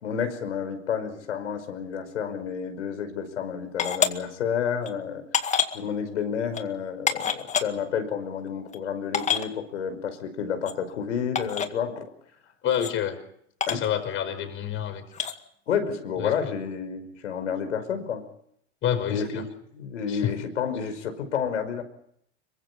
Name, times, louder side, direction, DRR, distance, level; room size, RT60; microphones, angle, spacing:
voice 1, 0.0-12.1 13.7-13.8 15.7-18.2 19.1-19.4 19.7-21.8, left 7 dB, 90° left, 8 dB, 5.5 m, -30 dB
sound 1, 3.8-4.1 4.8-4.9 5.3-5.8 6.5-6.6 7.1-7.6 8.5-8.6 8.7-8.8 9.1-9.5 10.6-10.7 11.3-11.7 12.7-12.9 13.6-13.9 15.1-15.3, left 7 dB, 20° left, 2.0 m, -26 dB
voice 2, 12.6-13.2 13.7-15.4 16.2-16.5 18.8-19.4 20.1-20.3, left 9 dB, 35° left, 9 dB, 5.2 m, -28 dB
26.0 x 23.5 x 5.6 m, 0.71 s
hypercardioid pair, 115°, 34 cm